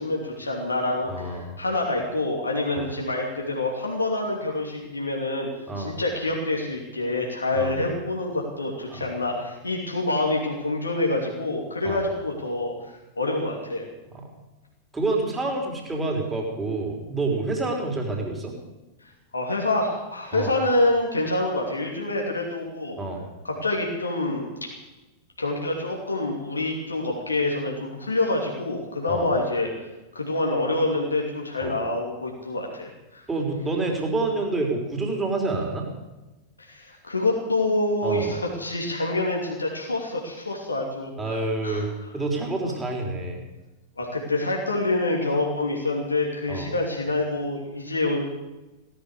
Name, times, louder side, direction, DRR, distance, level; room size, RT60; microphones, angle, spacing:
voice 1, 0.0-5.5 5.8-13.8 19.0-23.0 23.4-24.5 25.4-29.7 30.1-33.2 36.6-41.8 44.0-48.2, left 2 dB, 80° left, -1 dB, 2.9 m, -27 dB
voice 2, 1.1-1.5 2.8-2.9 5.7-6.0 7.5-7.7 8.9-9.1 11.8-12.0 14.9-18.5 20.3-20.5 23.0-23.2 29.1-29.3 31.6-31.8 33.3-35.9 38.0-38.4 41.2-43.4 46.5-46.7, right 2 dB, 15° right, 1 dB, 4.0 m, -28 dB
17.5 x 12.0 x 6.8 m, 1.1 s
figure-of-eight pair, 90°, 0 cm